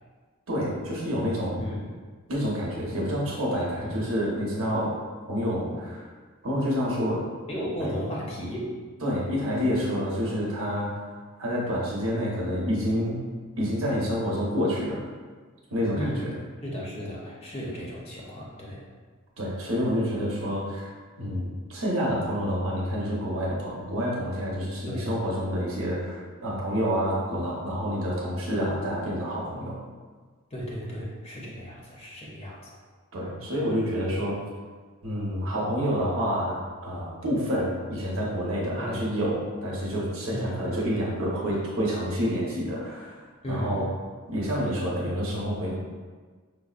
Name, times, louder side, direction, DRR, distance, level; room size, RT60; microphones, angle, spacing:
voice 1, 0.5-1.6 2.3-5.0 5.3-6.1 6.4-7.3 7.8-7.9 9.0-10.9 11.4-13.3 13.6-15.0 15.7-16.3 19.4-20.9 21.2-29.8 33.1-34.4 35.0-43.9 44.3-45.8, equal, 80° right, -5 dB, 0.9 m, -28 dB
voice 2, 1.6-1.9 3.8-4.0 7.5-8.8 16.0-16.3 16.6-18.8 24.9-25.1 30.5-32.8 38.8-39.0 40.3-40.6 43.4-43.9, equal, 30° left, -4 dB, 0.6 m, -34 dB
5.0 x 2.0 x 2.4 m, 1.4 s
head